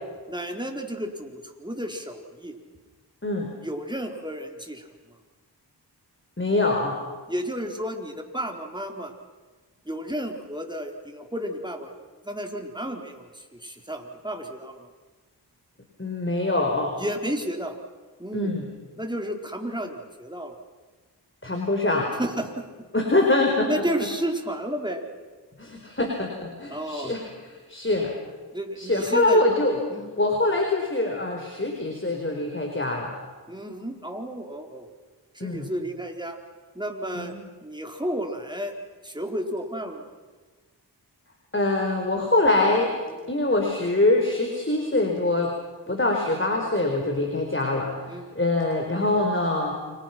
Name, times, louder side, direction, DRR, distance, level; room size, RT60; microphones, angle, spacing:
voice 1, 0.3-2.5 3.6-4.9 7.3-9.1 9.8-11.9 12.2-14.9 17.0-17.8 18.2-18.5 19.0-20.6 22.1-22.6 23.7-25.0 26.7-27.1 28.5-29.5 29.9-30.1 33.5-34.9 35.3-36.4 36.7-37.3 37.6-38.7 39.0-40.1 43.1-43.3 45.9-46.0 47.1-47.3 48.1-48.3, equal, 10° right, 3 dB, 4.2 m, -32 dB
voice 2, 6.4-7.0 16.0-16.9 18.3-18.6 21.4-22.1 22.9-23.8 25.6-27.2 27.7-28.1 28.8-29.8 30.2-33.2 35.4-35.7 37.1-37.4 41.5-43.0 43.3-45.5 45.9-47.9 48.3-49.8, left 2 dB, 30° left, 2 dB, 4.7 m, -24 dB
29.0 x 25.5 x 6.0 m, 1.3 s
cardioid pair, 45°, 41 cm